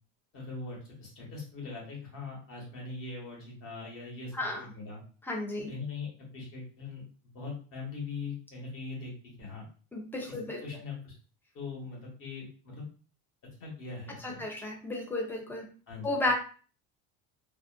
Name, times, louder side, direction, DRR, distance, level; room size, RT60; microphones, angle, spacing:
voice 1, 0.3-5.0 5.7-7.0 7.3-9.7 10.3-11.1 11.5-12.9 13.6-14.4 15.9-16.2, left 4 dB, 45° left, -3 dB, 1.1 m, -41 dB
voice 2, 5.3-5.7 9.9-10.6 14.2-15.7 16.0-16.3, left 2 dB, 5° left, 1 dB, 0.4 m, -33 dB
2.5 x 2.1 x 2.4 m, 0.39 s
cardioid pair, 140°, 32 cm